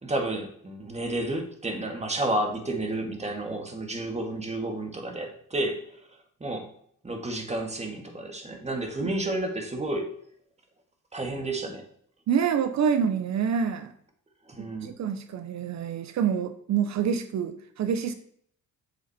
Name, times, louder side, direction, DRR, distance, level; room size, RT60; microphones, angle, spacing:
voice 1, 0.0-5.8 6.4-6.7 7.0-10.1 11.1-11.8 14.5-14.9, right 1 dB, 20° right, 3 dB, 2.0 m, -31 dB
voice 2, 12.3-13.9 14.6-18.1, right 7 dB, 65° right, 10 dB, 0.8 m, -27 dB
7.9 x 6.6 x 4.3 m, 0.63 s
cardioid pair, 90°, 30 cm